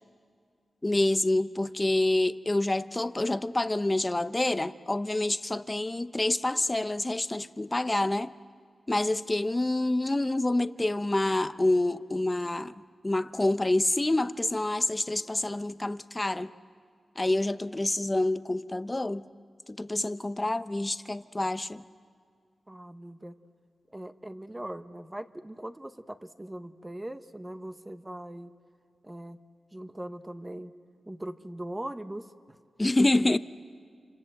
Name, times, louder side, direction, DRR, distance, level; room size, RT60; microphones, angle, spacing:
voice 1, 0.8-8.3 8.9-16.5 17.2-19.3 19.7-21.8 32.8-33.4, left 2 dB, 20° left, 0.7 m, -27 dB
voice 2, 22.7-23.3 23.9-28.5 29.0-29.4 29.7-30.7 31.1-32.6 33.1-33.4, right 1 dB, 15° right, 1.0 m, -40 dB
29.5 x 26.0 x 7.7 m
wide cardioid pair, 110°, 0 cm